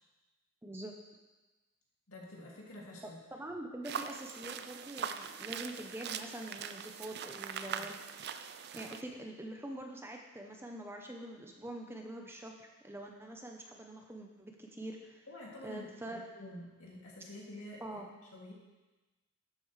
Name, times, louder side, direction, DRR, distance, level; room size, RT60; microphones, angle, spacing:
voice 1, 0.6-0.9 3.3-8.0 8.7-12.5 12.8-15.2 15.6-16.2 17.8-18.1, right 1 dB, 10° right, 2 dB, 0.7 m, -45 dB
voice 2, 2.1-3.2 7.6-7.9 15.3-18.0 18.3-18.5, left 1 dB, 75° left, -4 dB, 2.5 m, -49 dB
sound 1, 3.8-9.0, right 7 dB, 50° right, 0.4 m, -42 dB
12.0 x 8.4 x 3.3 m, 1.2 s
head